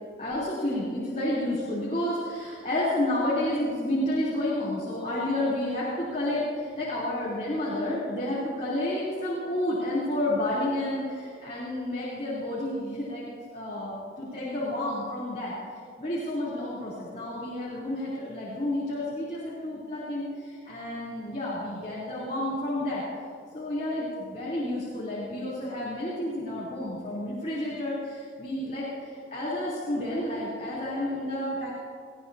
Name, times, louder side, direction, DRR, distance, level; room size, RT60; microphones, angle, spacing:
voice 1, 0.2-13.3 13.5-15.5 16.0-23.0 23.5-31.7, left 1 dB, 40° left, -9 dB, 3.5 m, -30 dB
20.5 x 17.5 x 2.8 m, 2.2 s
head